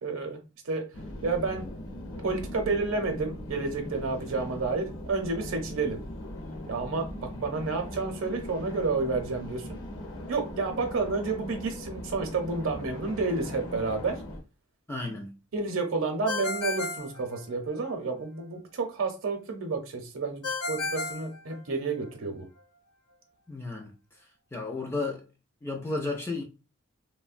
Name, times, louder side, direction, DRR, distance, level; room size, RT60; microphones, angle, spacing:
voice 1, 0.0-0.4 0.7-0.8 1.2-1.6 2.2-6.0 6.6-9.7 10.3-14.1 15.5-22.4, right 3 dB, 70° right, 0.6 m, -30 dB
sound 1, 0.9-14.4, left 1 dB, 60° left, 0.9 m, -40 dB
voice 2, 14.9-15.3 23.5-23.9 24.5-25.2 25.6-26.4, left 3 dB, 10° left, 0.3 m, -33 dB
Ringtone, 16.3-17.9 20.4-22.1, left 3 dB, 85° left, 0.6 m, -34 dB
3.2 x 2.1 x 2.4 m
head